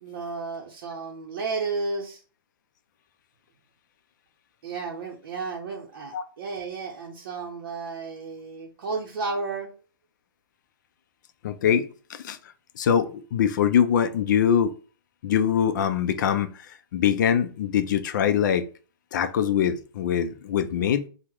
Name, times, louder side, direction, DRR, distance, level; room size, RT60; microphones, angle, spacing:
voice 1, 0.0-2.2 4.6-9.7, right 4 dB, 55° right, 0.7 m, -32 dB
voice 2, 11.4-12.4 12.8-14.7 15.2-16.5 16.9-18.7 19.1-21.1, left 8 dB, 55° left, 0.4 m, -23 dB
2.9 x 2.1 x 3.5 m
hypercardioid pair, 145°, 12 cm